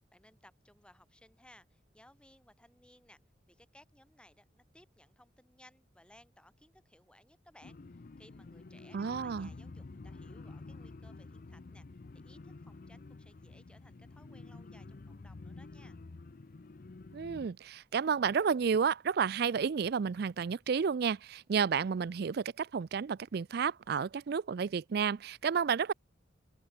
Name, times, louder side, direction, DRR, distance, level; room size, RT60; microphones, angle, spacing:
voice 1, 0.1-3.2 3.5-16.0, left 1 dB, 5° left, 7.2 m, -62 dB
sound 1, 7.6-17.5, left 3 dB, 45° left, 0.5 m, -49 dB
voice 2, 8.9-9.5 17.1-25.9, right 6 dB, 55° right, 0.4 m, -31 dB
open air
head